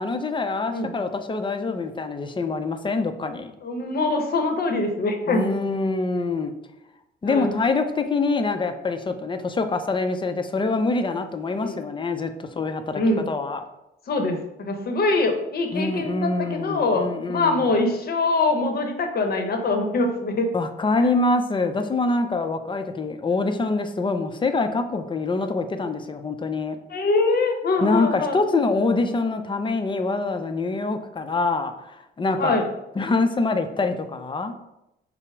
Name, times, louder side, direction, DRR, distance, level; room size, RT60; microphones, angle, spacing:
voice 1, 0.0-3.5 5.3-6.5 7.2-13.0 13.3-13.6 15.7-17.7 20.5-26.8 27.8-32.6 33.0-34.5, left 3 dB, 25° left, 7 dB, 0.5 m, -25 dB
voice 2, 3.6-5.5 7.3-7.5 11.6-11.8 12.9-13.3 14.1-20.5 21.0-21.1 26.9-28.4 32.4-32.6, left 3 dB, 50° left, 4 dB, 0.8 m, -23 dB
5.6 x 2.0 x 4.6 m, 0.88 s
cardioid pair, 90°, 20 cm